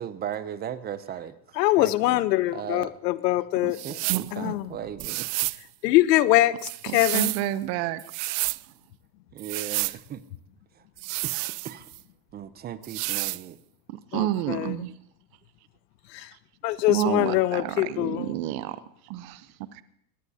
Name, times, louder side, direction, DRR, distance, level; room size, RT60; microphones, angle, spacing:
voice 1, 0.0-2.2 2.5-2.9 3.8-5.3 9.3-10.2 10.8-10.9 11.2-11.9 12.3-13.6 16.9-17.5, right 9 dB, 20° right, 14 dB, 0.5 m, -37 dB
voice 2, 1.6-3.8 4.3-4.7 5.8-7.3 14.1-14.7 16.1-16.3 16.6-18.3, left 16 dB, 75° left, 16 dB, 0.9 m, -23 dB
sound 1, 3.7-4.3 5.0-5.6 6.6-7.5 8.0-8.6 9.4-10.0 11.0-12.0 12.8-13.4, right 23 dB, 65° right, 0.5 m, -30 dB
voice 3, 4.1-4.5 6.9-8.0 13.9-14.9 16.9-18.8 19.0-19.5 19.7-19.8, right 14 dB, 50° right, 14 dB, 0.9 m, -30 dB
22.0 x 18.0 x 2.8 m, 0.69 s
supercardioid pair, 130°, 50 cm